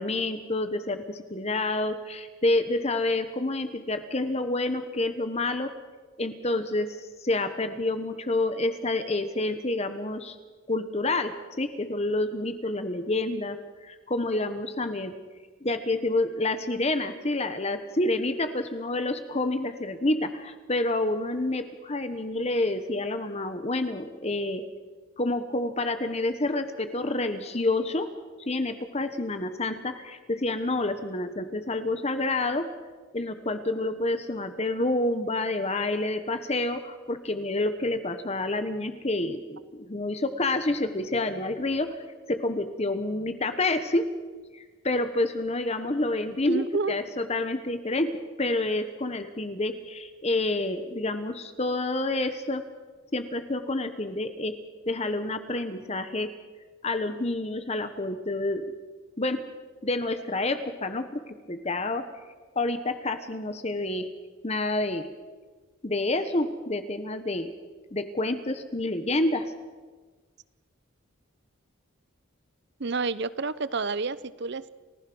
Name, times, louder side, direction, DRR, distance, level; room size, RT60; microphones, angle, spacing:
voice 1, 0.0-5.7 6.2-10.4 10.7-15.1 15.6-24.6 25.2-28.1 28.5-32.7 33.1-44.1 44.5-52.6 53.1-54.6 54.9-56.3 56.8-58.7 59.2-59.4 59.8-61.2 61.5-62.0 62.5-64.1 64.4-65.0 65.8-67.5 67.9-69.5, left 2 dB, 30° left, 9 dB, 1.1 m, -28 dB
voice 2, 46.5-46.9 72.8-74.7, right 4 dB, 55° right, 17 dB, 0.7 m, -29 dB
30.0 x 15.5 x 6.2 m, 1.4 s
head